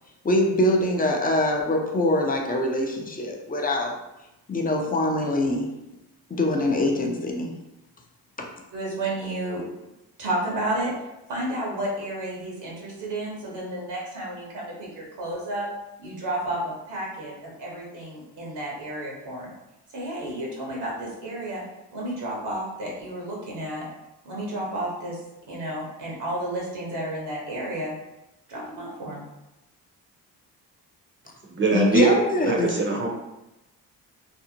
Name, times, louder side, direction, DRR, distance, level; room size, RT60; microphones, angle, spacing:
voice 1, 0.2-3.9 4.5-5.7 6.3-7.5 8.4-8.5 31.7-32.7, left 1 dB, 20° left, 1 dB, 0.5 m, -23 dB
voice 2, 8.7-9.6 10.2-10.9 11.3-15.7 16.0-19.5 19.9-21.6 21.9-23.9 24.2-25.2 25.5-27.9 28.5-29.2, right 1 dB, 65° right, -3 dB, 1.0 m, -31 dB
voice 3, 31.5-32.2 32.4-33.1, right 4 dB, 25° right, 1 dB, 0.7 m, -22 dB
2.7 x 2.0 x 2.7 m, 0.94 s
supercardioid pair, 55°, 44 cm